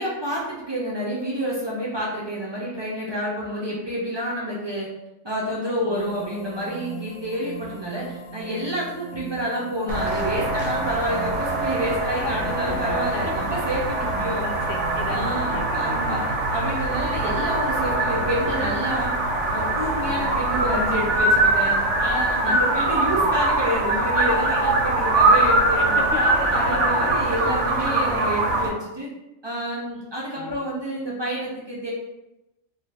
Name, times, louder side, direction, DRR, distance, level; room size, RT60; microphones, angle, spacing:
voice 1, 0.0-4.9 5.2-14.4 15.1-16.2 16.5-19.2 19.5-26.0 26.5-29.1 29.4-31.9, equal, 45° right, -6 dB, 0.3 m, -29 dB
voice 2, 5.8-6.3 12.1-13.0 14.0-16.3 20.0-20.3 22.4-22.7 23.0-23.4 26.0-27.3 30.3-30.7, left 4 dB, 70° left, 2 dB, 0.9 m, -34 dB
sound 1, 5.9-15.4, right 6 dB, 35° left, 0.9 m, -40 dB
sound 2, 9.9-28.7, right 2 dB, 75° right, 0.9 m, -23 dB
2.6 x 2.5 x 3.2 m, 0.93 s
omnidirectional pair, 1.3 m